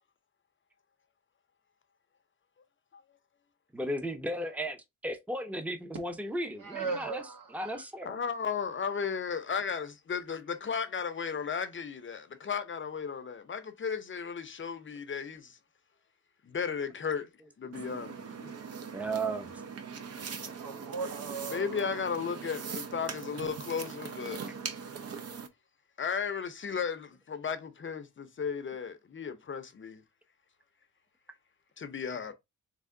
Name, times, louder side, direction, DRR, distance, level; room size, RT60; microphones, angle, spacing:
voice 1, 3.7-7.2 7.5-8.2 18.9-19.5, right 1 dB, 5° right, 0.6 m, -35 dB
voice 2, 6.6-7.8 20.6-22.0, right 4 dB, 75° right, 1.2 m, -38 dB
voice 3, 8.0-15.6 16.5-17.3 17.6-18.5 21.5-24.4 26.0-30.0 31.8-32.3, left 6 dB, 35° left, 0.6 m, -35 dB
sound 1, 17.7-25.5, right 6 dB, 50° right, 0.6 m, -41 dB
3.5 x 3.3 x 3.7 m
cardioid pair, 110°, 33 cm